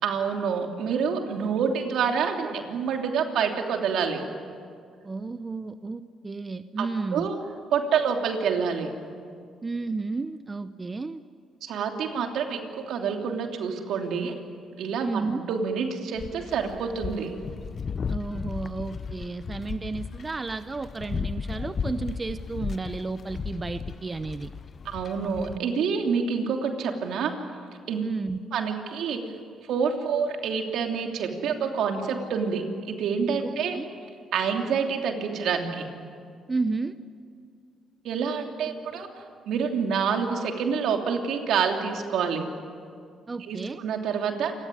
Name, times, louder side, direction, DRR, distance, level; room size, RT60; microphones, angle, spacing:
voice 1, 0.0-4.2 6.8-6.9 7.1-7.4 7.7-8.9 11.6-14.4 14.8-17.3 24.8-27.3 27.9-28.1 28.5-29.2 29.7-33.8 34.3-35.9 38.0-39.1 39.5-42.4 43.5-44.5, right 6 dB, 80° right, 3 dB, 3.0 m, -27 dB
voice 2, 5.0-7.3 9.6-11.2 15.0-15.4 18.1-24.5 28.0-28.4 33.4-33.9 36.5-37.0 43.3-43.8, right 3 dB, 25° right, 11 dB, 0.8 m, -32 dB
sound 1, 16.2-25.6, left 6 dB, 45° left, 0.6 m, -35 dB
28.5 x 17.0 x 9.9 m, 2.2 s
cardioid pair, 90°, 0 cm